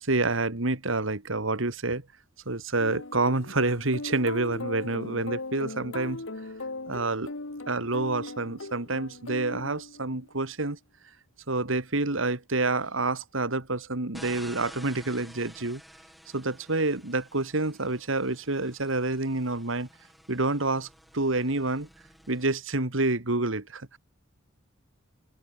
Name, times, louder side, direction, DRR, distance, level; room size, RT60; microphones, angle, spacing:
voice 1, 0.1-2.0 2.5-6.2 6.9-7.3 7.7-10.8 11.5-15.8 16.3-19.9 20.3-20.9 21.1-21.9 22.3-24.0, right 2 dB, 70° right, 2.1 m, -28 dB
sound 1, 2.8-10.3, left 2 dB, 70° left, 1.8 m, -39 dB
sound 2, 14.1-22.5, equal, ahead, 7.5 m, -51 dB
open air
head